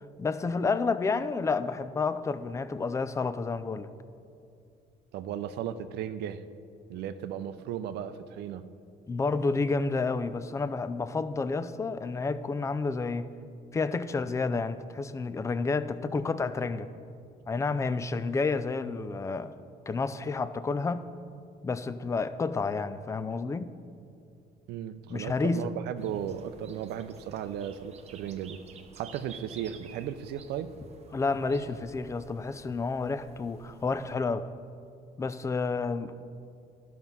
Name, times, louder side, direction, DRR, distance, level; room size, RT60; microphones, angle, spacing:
voice 1, 0.2-3.9 9.1-13.3 13.7-16.9 17.5-19.5 19.9-21.1 21.6-23.7 25.1-25.7 31.1-34.5 35.2-36.3, left 4 dB, 20° left, 13 dB, 0.4 m, -30 dB
voice 2, 5.1-6.4 6.9-8.7 24.7-28.6 29.0-30.7, right 9 dB, 80° right, 11 dB, 0.5 m, -36 dB
sound 1, 26.0-34.2, right 5 dB, 40° right, 0.7 m, -52 dB
12.0 x 6.0 x 5.5 m, 2.5 s
cardioid pair, 110°, 17 cm